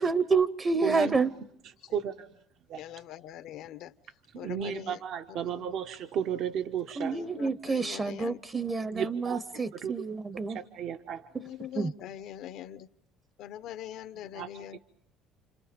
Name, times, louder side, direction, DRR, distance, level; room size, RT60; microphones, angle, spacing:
voice 1, 0.0-1.3 7.0-10.6 11.8-11.9, right 4 dB, 25° right, 15 dB, 0.8 m, -28 dB
voice 2, 0.8-1.1 1.9-2.3 2.7-2.8 4.3-7.2 8.9-9.4 9.7-9.9 10.5-11.2 14.3-14.5, right 8 dB, 65° right, 6 dB, 1.1 m, -33 dB
voice 3, 2.7-3.9 4.4-5.0 5.3-5.7 7.1-8.4 9.3-9.6 11.4-12.9 13.4-14.8, left 11 dB, 70° left, 13 dB, 0.9 m, -43 dB
29.5 x 27.0 x 5.2 m, 0.74 s
cardioid pair, 105°, 0 cm